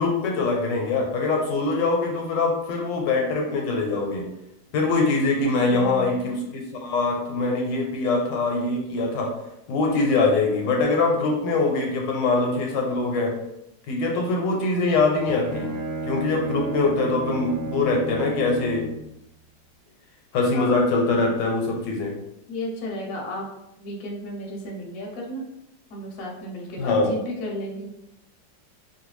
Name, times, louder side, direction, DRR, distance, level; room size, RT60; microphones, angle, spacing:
voice 1, 0.0-4.3 4.7-9.3 9.7-13.4 13.9-15.7 16.1-18.8 20.3-22.2 26.8-27.1, left 3 dB, 80° left, 0 dB, 1.2 m, -23 dB
voice 2, 5.7-6.4 20.5-20.9 22.5-23.5 23.8-25.5 25.9-27.9, left 1 dB, 65° left, -1 dB, 0.9 m, -34 dB
Bowed string instrument, 15.0-19.1, right 2 dB, 85° right, 1.4 m, -32 dB
3.0 x 2.3 x 3.1 m, 0.84 s
omnidirectional pair, 2.0 m